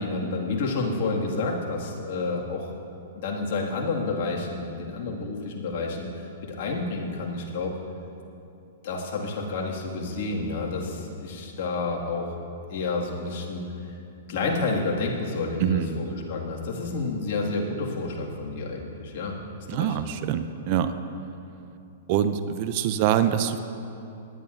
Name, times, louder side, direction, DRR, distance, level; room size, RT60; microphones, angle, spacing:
voice 1, 0.0-2.7 3.2-7.7 8.8-14.0 14.3-19.4 19.7-20.0, left 3 dB, 55° left, -1 dB, 1.9 m, -30 dB
voice 2, 15.6-16.0 19.7-20.9 22.1-23.6, right 9 dB, 50° right, 10 dB, 0.6 m, -24 dB
18.5 x 10.5 x 2.5 m, 2.7 s
hypercardioid pair, 115°, 0 cm